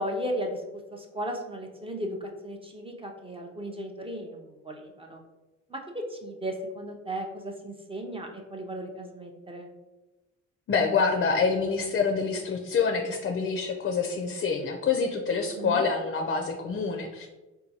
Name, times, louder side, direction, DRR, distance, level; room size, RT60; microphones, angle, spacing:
voice 1, 0.0-5.2 5.7-9.7 15.6-15.8, equal, 20° right, 2 dB, 0.5 m, -36 dB
voice 2, 10.7-17.3, left 5 dB, 40° left, 3 dB, 0.4 m, -26 dB
4.4 x 2.2 x 2.7 m, 1.1 s
cardioid pair, 90°, 30 cm